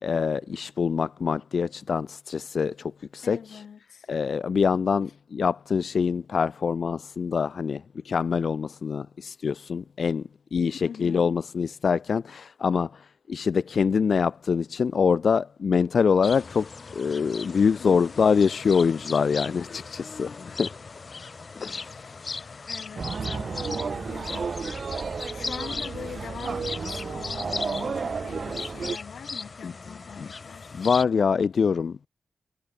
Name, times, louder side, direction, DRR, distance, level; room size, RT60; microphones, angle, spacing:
voice 1, 0.0-3.6 4.1-20.7 21.6-22.7 29.6-29.7 30.2-30.3 30.7-32.1, left 6 dB, 60° left, 1.1 m, -25 dB
voice 2, 3.2-4.1 10.8-11.4 17.8-18.0 22.7-24.6 25.3-30.7, left 7 dB, 80° left, 4.3 m, -42 dB
sound 1, 16.2-31.0, left 4 dB, 40° left, 3.2 m, -38 dB
sound 2, 23.0-29.0, right 5 dB, 50° right, 0.9 m, -32 dB
wide cardioid pair, 135°, 0 cm